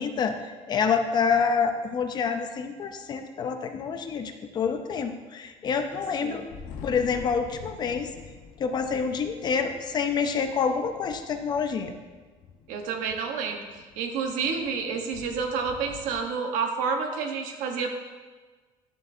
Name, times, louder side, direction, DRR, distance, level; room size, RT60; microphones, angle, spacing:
voice 1, 0.0-6.4 6.8-8.1 8.6-11.9, left 6 dB, 30° left, 7 dB, 0.5 m, -27 dB
Thunder, 6.4-16.2, left 6 dB, 80° left, 0.9 m, -47 dB
voice 2, 12.7-17.9, right 5 dB, 85° right, 4 dB, 1.1 m, -29 dB
11.0 x 7.6 x 2.6 m, 1.4 s
cardioid pair, 175°, 13 cm